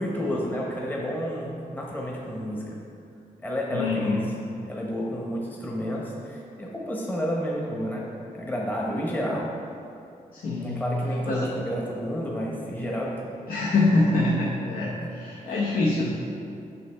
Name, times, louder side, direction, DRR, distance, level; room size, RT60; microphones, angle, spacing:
voice 1, 0.0-2.8 3.4-4.2 4.7-8.0 8.3-9.5 10.6-13.2 15.0-15.1, equal, 15° left, -3 dB, 0.9 m, -30 dB
voice 2, 3.7-4.2 10.3-10.9 11.3-11.5 13.5-16.0, left 2 dB, 80° left, -5 dB, 1.0 m, -24 dB
8.2 x 5.7 x 3.4 m, 2.6 s
wide cardioid pair, 130°, 15 cm